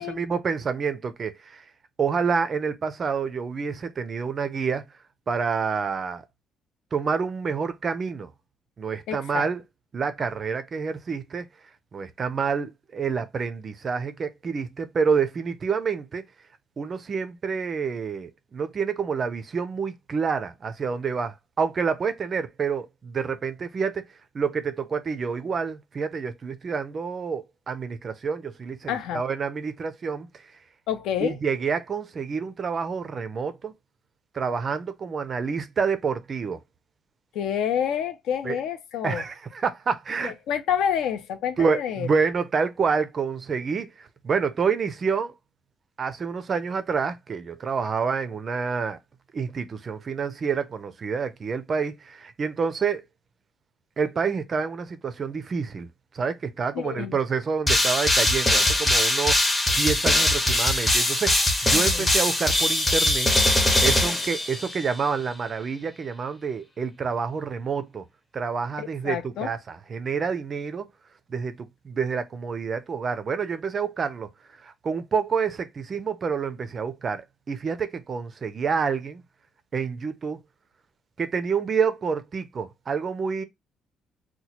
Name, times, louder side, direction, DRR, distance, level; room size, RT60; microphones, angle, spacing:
voice 1, 0.0-1.7 2.0-4.8 5.3-6.2 6.9-8.3 8.8-9.6 9.9-11.5 11.9-16.2 16.8-24.0 24.3-30.4 31.2-33.7 34.3-36.6 38.4-38.6 39.0-40.3 41.6-45.3 46.0-49.0 49.3-53.0 54.0-55.9 56.1-63.4 63.8-68.0 68.3-70.9 71.3-74.3 74.6-79.2 79.7-80.4 81.2-83.4, right 5 dB, 30° right, 0.4 m, -28 dB
voice 2, 9.1-9.5 28.9-29.2 30.9-31.4 37.3-39.2 40.2-42.1 56.7-57.2 61.7-62.1 68.8-69.5, left 9 dB, 75° left, 0.6 m, -28 dB
sound 1, 57.7-64.9, left 1 dB, 10° left, 0.6 m, -21 dB
2.9 x 2.2 x 4.1 m
cardioid pair, 180°, 0 cm